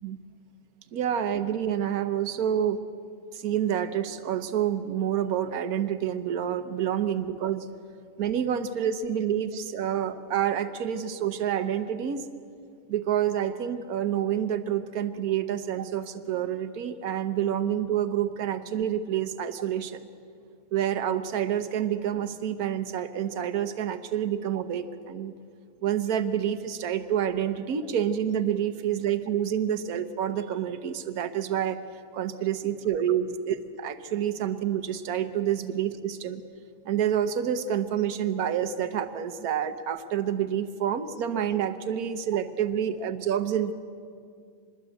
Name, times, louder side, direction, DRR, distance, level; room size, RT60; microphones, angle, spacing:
voice 1, 0.9-2.8 3.3-7.7 8.2-12.3 12.9-20.1 20.7-25.3 25.8-31.8 32.1-36.4 36.9-43.7, right 9 dB, 80° right, 9 dB, 1.4 m, -28 dB
25.5 x 21.5 x 8.0 m, 2.3 s
omnidirectional pair, 1.5 m